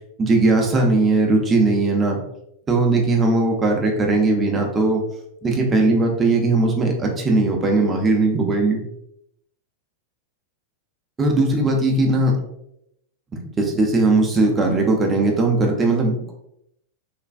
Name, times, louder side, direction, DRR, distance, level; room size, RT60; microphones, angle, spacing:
voice 1, 0.2-2.2 2.7-5.0 5.4-8.8 11.2-12.4 13.6-16.3, right 2 dB, 20° right, 1 dB, 0.7 m, -19 dB
3.4 x 2.3 x 2.5 m, 0.77 s
figure-of-eight pair, 90°, 0 cm